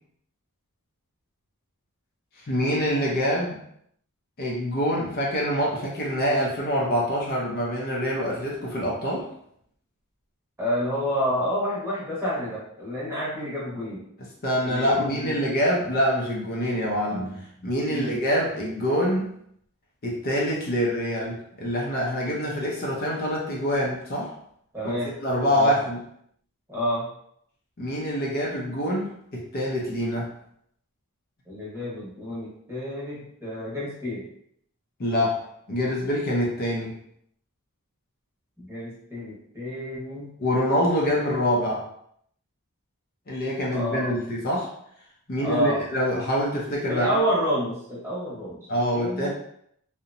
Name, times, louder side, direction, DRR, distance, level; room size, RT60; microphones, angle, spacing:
voice 1, 2.5-3.6 4.4-9.3 14.4-19.3 20.0-24.3 24.8-24.9 25.2-26.0 27.8-30.3 35.0-35.4 35.7-36.9 40.4-41.8 43.3-44.7 45.3-47.1 48.7-49.3, equal, 45° left, -3 dB, 0.5 m, -25 dB
voice 2, 10.6-14.0 14.6-15.4 17.9-18.1 24.7-25.2 25.5-25.8 26.7-27.1 31.5-34.3 38.6-40.3 43.7-44.2 45.4-45.8 46.9-49.3, equal, 10° right, -7 dB, 0.9 m, -29 dB
2.8 x 2.1 x 2.5 m, 0.70 s
head